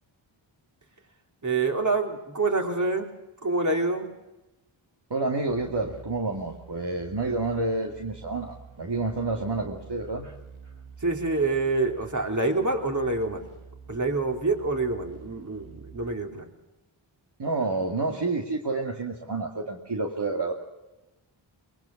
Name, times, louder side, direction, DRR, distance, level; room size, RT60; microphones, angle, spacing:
voice 1, 1.4-3.1 3.4-4.1 11.0-13.4 13.9-16.5, right 3 dB, 35° right, 3 dB, 3.6 m, -26 dB
voice 2, 5.1-10.3 17.4-20.5, right 3 dB, 55° right, 0 dB, 2.6 m, -29 dB
sound 1, 5.5-16.1, right 6 dB, 90° right, 2.5 m, -48 dB
22.5 x 21.5 x 7.3 m, 1.0 s
cardioid pair, 50°, 48 cm